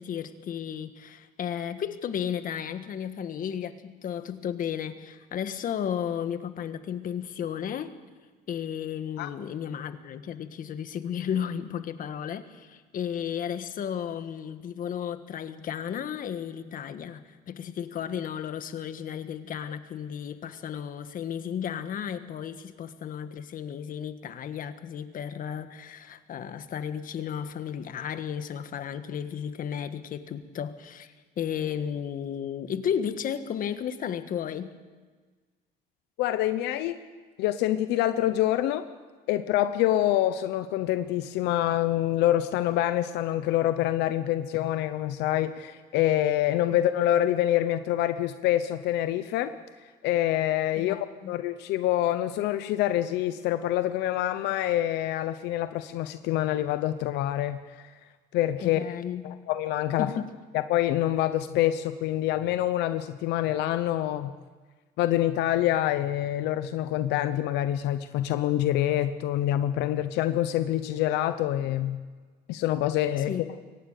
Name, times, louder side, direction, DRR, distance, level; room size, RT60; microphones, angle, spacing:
voice 1, 0.0-7.9 8.5-34.8 50.8-51.3 58.6-59.4 60.0-60.3 73.3-73.4, left 8 dB, 55° left, 10 dB, 1.6 m, -34 dB
voice 2, 36.2-37.0 37.4-38.8 39.3-49.5 50.0-51.0 51.3-57.8 58.3-58.8 59.2-60.1 60.5-64.3 65.0-72.0 72.5-73.3, left 13 dB, 90° left, 11 dB, 0.8 m, -26 dB
23.0 x 18.5 x 6.8 m, 1.4 s
cardioid pair, 110°, 17 cm